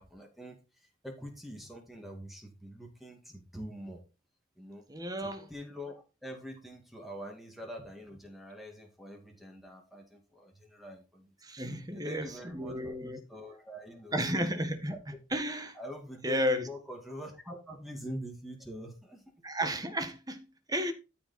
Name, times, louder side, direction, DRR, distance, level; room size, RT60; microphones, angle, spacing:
voice 1, 0.0-4.0 4.6-4.9 5.2-11.3 11.9-14.4 14.9-15.0 15.7-19.3, equal, ahead, 2.2 m, -45 dB
voice 2, 4.9-5.5 11.4-13.2 14.1-14.9 15.3-15.8 16.2-16.7 19.4-20.9, equal, 20° right, 1.3 m, -33 dB
13.0 x 5.1 x 4.2 m
head